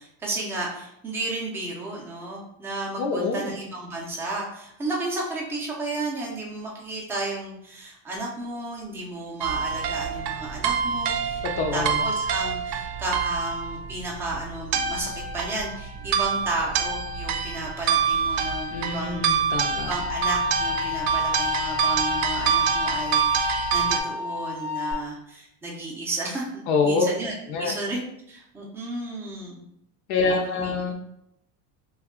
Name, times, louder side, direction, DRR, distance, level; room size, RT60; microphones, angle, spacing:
voice 1, 0.0-11.4 11.7-19.2 19.7-28.0 28.3-29.6 30.2-30.9, right 2 dB, 5° right, -4 dB, 0.3 m, -33 dB
voice 2, 3.0-3.5 11.6-12.1 18.7-19.9 26.7-27.1 27.5-27.7 30.1-30.9, left 4 dB, 70° left, 2 dB, 0.6 m, -25 dB
sound 1, 9.4-24.0, right 6 dB, 75° right, 0.5 m, -26 dB
sound 2, 19.9-24.9, left 7 dB, 30° right, 0.7 m, -31 dB
2.6 x 2.3 x 3.6 m, 0.78 s
cardioid pair, 165°, 39 cm